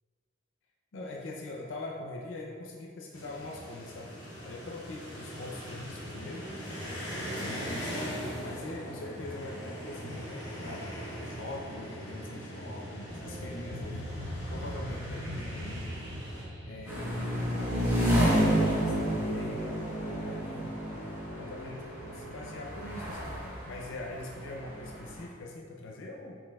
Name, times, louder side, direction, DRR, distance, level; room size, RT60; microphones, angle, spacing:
voice 1, 0.9-4.1 4.4-6.5 7.3-10.9 11.2-14.1 14.5-16.0 16.6-17.5 17.8-20.7 21.4-21.8 22.1-23.4 23.6-26.4, left 2 dB, 80° left, 0 dB, 0.5 m, -42 dB
sound 1, 3.1-16.4, equal, 20° left, 1.4 m, -40 dB
sound 2, 12.9-17.8, equal, 85° right, 0.8 m, -40 dB
sound 3, 16.9-25.2, equal, 10° right, 0.9 m, -30 dB
7.2 x 2.7 x 2.2 m, 2.1 s
head